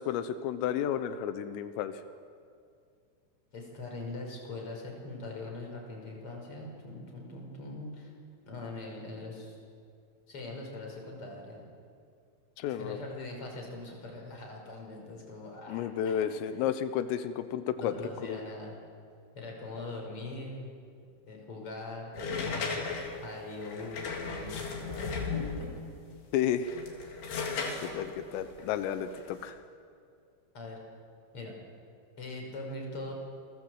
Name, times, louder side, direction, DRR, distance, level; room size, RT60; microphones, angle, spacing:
voice 1, 0.0-2.0 12.6-13.0 15.7-17.9 18.2-18.4 26.3-26.8 27.8-29.6, left 9 dB, 90° left, 10 dB, 3.6 m, -32 dB
voice 2, 3.5-8.1 8.5-9.6 10.3-11.7 12.8-16.1 17.8-18.8 19.3-20.7 21.3-25.7 30.5-30.8 31.3-31.6 32.2-33.1, left 2 dB, 25° left, 0 dB, 6.0 m, -42 dB
sound 1, 22.1-25.8 26.5-29.5, left 4 dB, 55° left, 4.9 m, -36 dB
28.0 x 22.5 x 8.1 m, 2.3 s
omnidirectional pair, 5.7 m